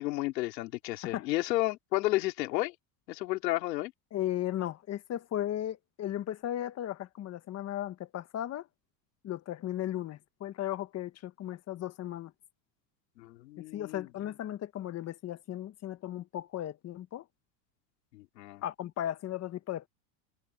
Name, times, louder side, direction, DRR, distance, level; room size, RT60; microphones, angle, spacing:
voice 1, 0.0-2.8 3.1-3.9 13.2-14.1 18.1-18.6, left 18 dB, 90° left, 3.7 m, -32 dB
voice 2, 4.1-8.7 9.2-12.3 13.7-17.2 18.6-19.9, left 12 dB, 30° left, 1.4 m, -36 dB
supercardioid pair, 140°, 49 cm